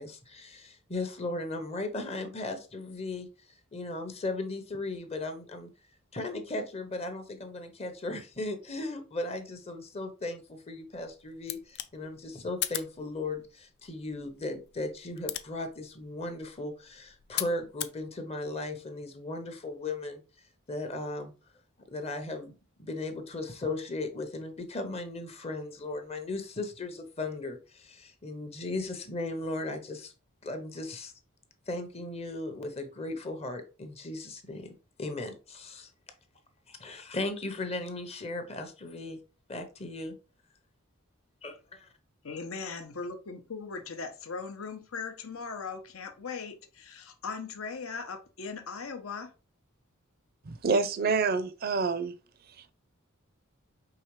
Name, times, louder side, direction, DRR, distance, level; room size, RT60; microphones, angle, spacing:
voice 1, 0.0-3.3 3.7-5.7 6.1-20.2 20.7-21.3 21.9-22.5 22.8-30.1 30.4-31.1 31.7-34.7 35.0-35.9 36.7-39.2 39.5-40.1 41.4-41.9, left 2 dB, 30° left, 0.7 m, -37 dB
sound 1, 10.9-18.0, left 13 dB, 50° left, 0.4 m, -41 dB
voice 2, 42.2-49.3, left 4 dB, 80° left, 0.8 m, -39 dB
voice 3, 50.5-52.1, right 4 dB, 45° right, 0.5 m, -27 dB
4.8 x 3.2 x 3.1 m
head